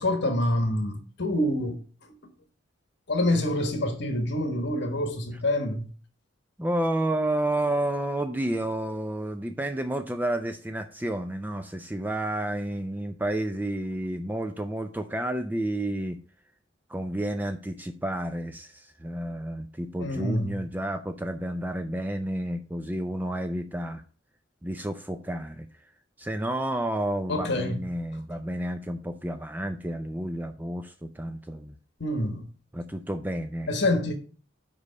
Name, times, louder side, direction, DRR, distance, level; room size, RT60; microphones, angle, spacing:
voice 1, 0.0-1.8 3.1-5.9 20.0-20.6 27.3-27.8 32.0-32.4 33.7-34.1, left 1 dB, 60° left, 1.2 m, -26 dB
voice 2, 6.6-16.2 16.9-24.0 24.6-25.7 26.2-31.7 32.7-33.7, right 1 dB, 10° right, 0.4 m, -30 dB
5.4 x 5.1 x 6.4 m
head